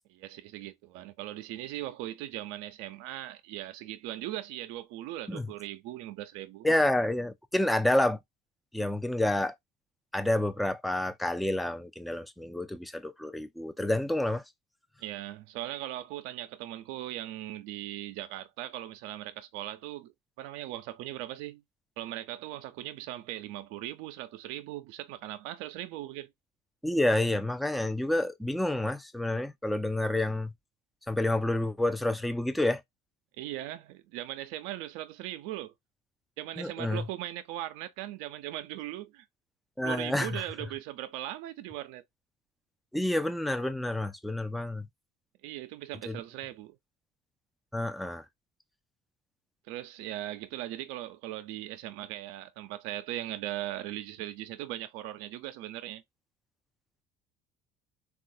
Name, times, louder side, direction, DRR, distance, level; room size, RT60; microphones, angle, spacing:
voice 1, 0.1-6.7 15.0-21.6 22.0-26.3 33.4-35.7 36.4-39.3 39.8-42.0 45.4-46.7 49.7-56.0, right 14 dB, 80° right, 0.5 m, -39 dB
voice 2, 6.6-8.2 8.7-9.5 10.1-14.4 26.8-30.5 31.1-32.8 36.6-37.0 39.8-40.4 42.9-44.9 46.1-46.2 47.7-48.2, left 1 dB, ahead, 0.4 m, -29 dB
3.6 x 2.3 x 2.6 m
supercardioid pair, 85°, 21 cm